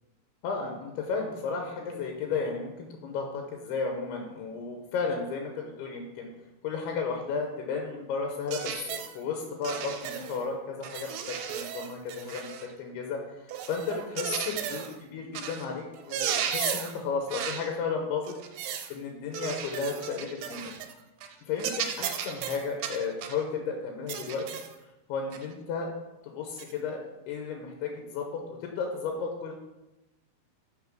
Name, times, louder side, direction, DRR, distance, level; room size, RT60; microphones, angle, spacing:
voice 1, 0.4-6.3 6.6-12.5 12.8-18.3 18.6-20.7 21.5-24.5 25.1-25.9 26.2-27.0 27.3-29.5, left 5 dB, 90° left, 2 dB, 2.9 m, -33 dB
sound 1, 8.5-9.2 9.6-10.4 10.8-12.7 13.5-15.0 15.4-15.7 16.0-17.0 17.3-17.7 18.3-18.9 19.3-20.9 21.2-21.4 21.6-23.4 24.1-24.8 25.3-25.5 26.6-26.7, right 9 dB, 85° right, 2.6 m, -35 dB
6.0 x 6.0 x 6.0 m, 1.0 s
omnidirectional pair, 4.5 m